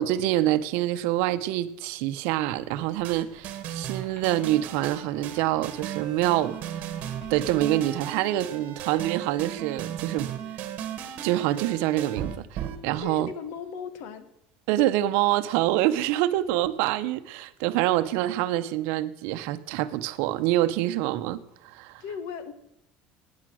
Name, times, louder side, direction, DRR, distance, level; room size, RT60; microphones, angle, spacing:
voice 1, 0.0-6.9 7.3-10.3 11.2-13.3 14.7-22.0, right 14 dB, 70° right, 0.8 m, -26 dB
sound 1, 2.4-7.7, left 1 dB, 35° left, 4.8 m, -51 dB
sound 2, 3.0-13.0, right 10 dB, 45° right, 1.6 m, -36 dB
voice 2, 13.0-14.3 22.0-22.5, left 6 dB, 70° left, 1.4 m, -36 dB
17.0 x 9.5 x 6.3 m
cardioid pair, 165°, 3 cm